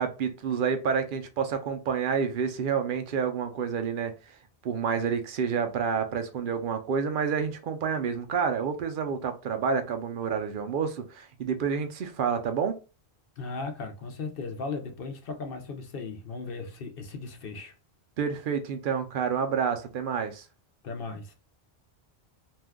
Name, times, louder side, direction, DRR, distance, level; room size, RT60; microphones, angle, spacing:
voice 1, 0.0-4.1 4.6-12.8 18.2-20.4, right 6 dB, 60° right, 0.7 m, -29 dB
voice 2, 13.4-17.7 20.8-21.3, left 4 dB, 65° left, 0.8 m, -37 dB
2.6 x 2.2 x 3.5 m
omnidirectional pair, 1.1 m